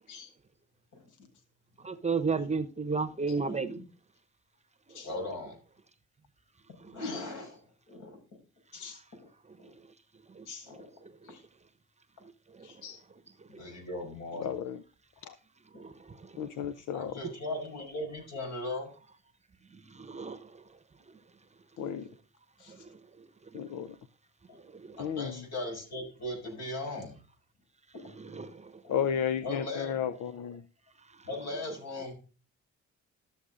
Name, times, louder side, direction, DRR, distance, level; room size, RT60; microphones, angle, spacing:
voice 1, 1.8-3.8 10.4-10.5 12.6-12.7 15.8-15.9 20.0-20.4 24.8-24.9 28.3-28.7, right 4 dB, 25° right, 0.9 m, -32 dB
voice 2, 3.3-3.8 5.0-5.6 6.9-7.6 7.9-8.2 10.7-10.8 13.5-14.5 16.9-18.9 25.0-27.1 28.8-28.9 29.4-30.2 31.2-32.2, left 2 dB, 60° left, 5.9 m, -38 dB
voice 3, 12.6-13.0 14.4-14.8 15.3-15.4 16.4-17.1 21.8-22.1 22.6-22.7 23.5-23.9 25.0-25.4 28.9-30.6, left 8 dB, 80° left, 0.7 m, -34 dB
13.0 x 7.2 x 3.8 m
cardioid pair, 90°, 30 cm